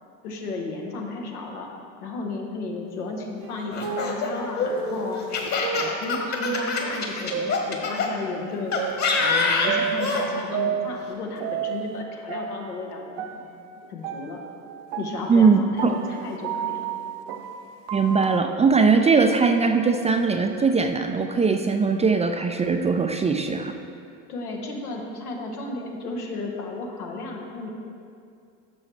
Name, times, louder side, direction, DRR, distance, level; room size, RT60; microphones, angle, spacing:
voice 1, 0.2-1.7 2.0-5.2 5.7-8.8 9.1-13.4 13.9-14.4 15.0-16.9 24.3-27.7, left 3 dB, 85° left, 0 dB, 1.2 m, -34 dB
sound 1, 3.4-8.2 8.8-12.0 12.3-18.4, right 7 dB, 55° right, 0.8 m, -32 dB
Laughter, 3.7-8.1 8.7-10.3, left 4 dB, 40° left, 1.5 m, -25 dB
voice 2, 15.3-15.9 17.9-23.7, right 4 dB, 15° right, 5 dB, 0.3 m, -20 dB
11.5 x 6.2 x 3.3 m, 2.4 s
hypercardioid pair, 70°, 44 cm